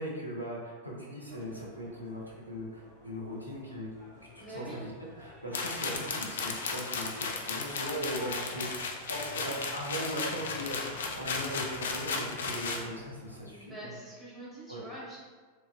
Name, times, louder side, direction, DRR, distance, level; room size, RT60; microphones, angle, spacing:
voice 1, 0.0-3.9 4.3-4.9 5.2-13.9 14.7-14.8, equal, 90° right, -5 dB, 0.6 m, -39 dB
sound 1, 1.3-13.4, equal, 65° right, 1.1 m, -51 dB
voice 2, 4.4-4.9 13.5-15.2, right 1 dB, 10° right, -9 dB, 1.3 m, -45 dB
sound 2, 5.5-12.8, left 4 dB, 60° left, 0.3 m, -35 dB
3.1 x 2.7 x 2.3 m, 1.4 s
figure-of-eight pair, 90°, 0 cm